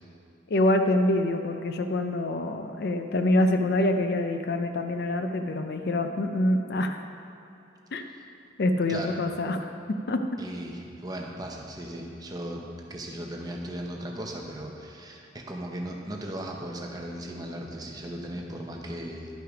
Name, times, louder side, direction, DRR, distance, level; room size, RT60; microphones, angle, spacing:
voice 1, 0.5-7.0 7.9-8.0 8.6-10.4, left 1 dB, 55° left, 6 dB, 0.5 m, -26 dB
voice 2, 10.4-19.3, right 1 dB, 20° right, 0 dB, 0.9 m, -37 dB
11.5 x 5.7 x 5.0 m, 2.9 s
head